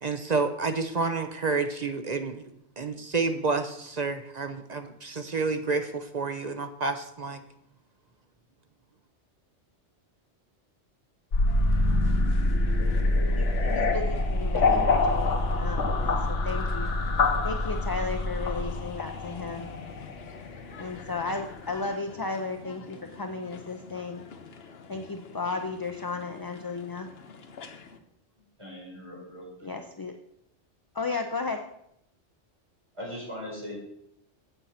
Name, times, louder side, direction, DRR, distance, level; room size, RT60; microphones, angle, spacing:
voice 1, 0.0-2.5 2.8-7.4, right 4 dB, 40° right, 7 dB, 0.8 m, -29 dB
sound 1, 11.3-21.3, left 2 dB, 90° left, 1.4 m, -26 dB
sound 2, 11.5-28.0, left 5 dB, 60° left, 1.1 m, -46 dB
voice 2, 13.3-15.3 15.6-16.9 17.4-19.7 20.8-24.2 24.9-27.1 29.6-30.1 30.9-31.6, left 3 dB, 25° left, 5 dB, 0.5 m, -34 dB
voice 3, 28.4-29.7 32.9-33.8, equal, 25° right, -5 dB, 4.5 m, -40 dB
8.1 x 7.9 x 5.8 m, 0.76 s
omnidirectional pair, 1.2 m